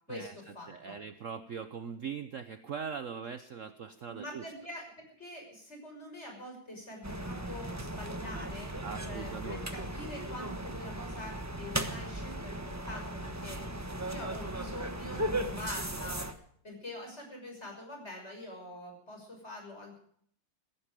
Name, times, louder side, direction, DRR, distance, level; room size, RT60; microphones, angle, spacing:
voice 1, 0.1-1.0 4.1-4.9 5.2-13.6 14.0-16.2 16.6-20.0, left 1 dB, 35° left, 2 dB, 6.5 m, -45 dB
voice 2, 0.7-4.5 8.8-9.6, right 6 dB, 55° right, 10 dB, 1.0 m, -41 dB
sound 1, 7.0-16.3, right 1 dB, 10° right, 0.9 m, -37 dB
16.5 x 16.0 x 5.1 m, 0.64 s
omnidirectional pair, 2.0 m